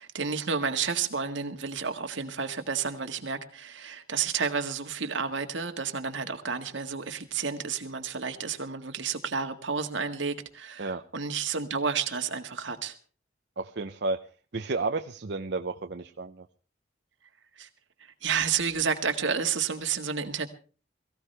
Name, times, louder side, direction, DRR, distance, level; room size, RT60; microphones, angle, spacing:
voice 1, 0.0-13.0 17.6-17.7 18.0-20.5, right 6 dB, 80° right, 1.7 m, -31 dB
voice 2, 13.6-14.2 14.5-16.5, right 3 dB, 60° right, 0.6 m, -32 dB
22.5 x 15.5 x 3.4 m
head